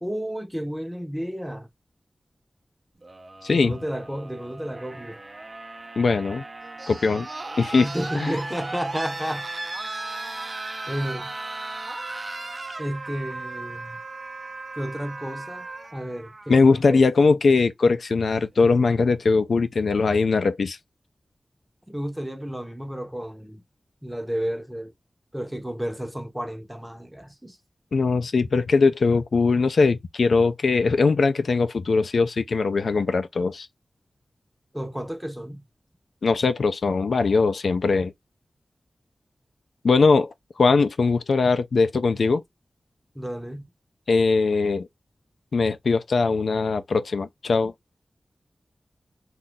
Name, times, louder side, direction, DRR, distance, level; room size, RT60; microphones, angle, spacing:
voice 1, 0.0-1.7 3.5-5.2 7.8-9.5 10.9-11.3 12.8-14.0 14.8-15.7 15.9-17.3 21.9-23.6 24.0-24.9 25.3-27.6 34.7-35.6 43.1-43.7, equal, 5° right, 0.6 m, -32 dB
sound 1, 3.0-17.0 18.2-18.3, right 2 dB, 50° right, 0.6 m, -36 dB
voice 2, 3.4-3.7 6.0-6.4 6.9-7.3 7.6-7.9 8.1-8.3 16.5-20.8 27.9-33.7 36.2-38.1 39.8-42.4 44.1-44.9 45.5-47.7, left 4 dB, 85° left, 0.4 m, -21 dB
2.6 x 2.3 x 3.8 m
wide cardioid pair, 55°, 0 cm